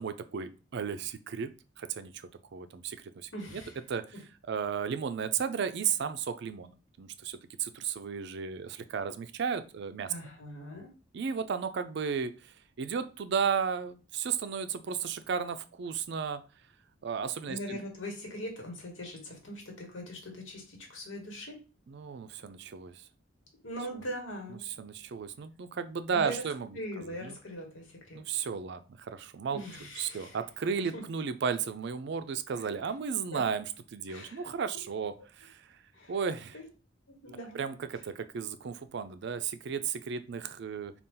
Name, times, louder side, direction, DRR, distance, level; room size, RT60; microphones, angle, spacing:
voice 1, 0.0-1.5 1.8-3.3 3.9-4.0 4.5-10.1 11.1-16.4 17.0-17.8 21.9-23.1 24.8-26.8 27.2-27.3 28.1-29.6 30.0-33.7 33.9-35.8 36.1-36.5 37.5-40.9, right 6 dB, 65° right, 11 dB, 0.4 m, -34 dB
voice 2, 3.3-3.8 4.1-4.2 10.1-10.9 17.5-21.6 23.6-24.6 26.1-26.4 26.7-28.2 29.5-30.4 30.8-31.0 32.5-32.7 33.3-33.4 34.1-34.5 35.9-36.2 36.5-36.6 37.1-37.6, equal, 90° left, 1 dB, 1.4 m, -41 dB
4.0 x 2.4 x 3.7 m, 0.34 s
head